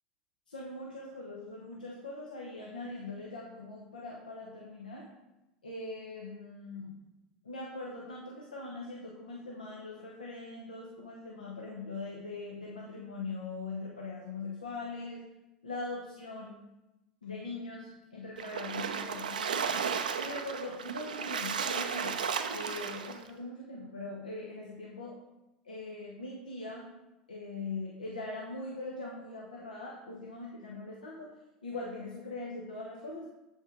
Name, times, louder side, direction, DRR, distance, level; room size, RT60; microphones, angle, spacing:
voice 1, 0.5-5.1 5.6-6.9 7.4-15.2 15.6-16.6 17.2-19.7 20.2-25.1 25.6-26.9 27.3-31.3 31.6-33.3, left 3 dB, 85° left, -3 dB, 1.0 m, -41 dB
Splash splatter, 18.4-23.2, right 6 dB, 80° right, 0.5 m, -34 dB
7.4 x 5.3 x 3.8 m, 0.96 s
figure-of-eight pair, 80°, 4 cm